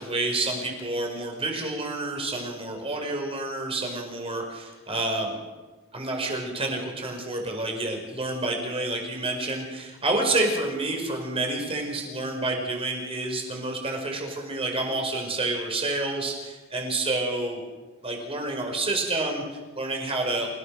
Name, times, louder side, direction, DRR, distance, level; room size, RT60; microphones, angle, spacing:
voice 1, 0.0-5.4 5.9-17.6 18.0-20.5, right 2 dB, 25° right, 2 dB, 5.2 m, -29 dB
29.0 x 17.0 x 6.7 m, 1.3 s
head